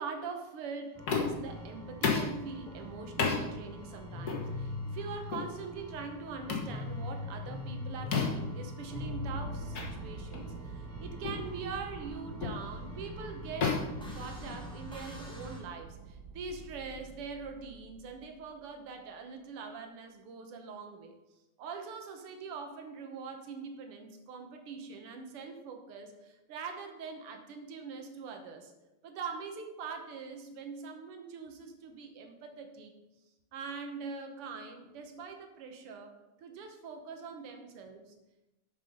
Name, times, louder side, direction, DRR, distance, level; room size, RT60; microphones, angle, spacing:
voice 1, 0.0-13.8 14.1-21.2 21.6-28.7 29.0-32.9 33.5-36.1 36.4-38.1, right 5 dB, 90° right, 5 dB, 2.0 m, -43 dB
sound 1, 0.9-15.6, left 2 dB, 5° left, 1.3 m, -43 dB
sound 2, 1.1-1.5 2.0-2.4 3.2-3.4 4.3-4.5 5.3-5.5 6.5-6.7 8.1-8.5 9.7-9.9 10.3-10.5 11.2-11.5 12.4-12.7 13.6-14.8, left 5 dB, 50° left, 1.8 m, -31 dB
sound 3, 8.8-18.4, right 4 dB, 65° right, 1.2 m, -46 dB
7.5 x 7.2 x 5.3 m, 0.99 s
omnidirectional pair, 2.4 m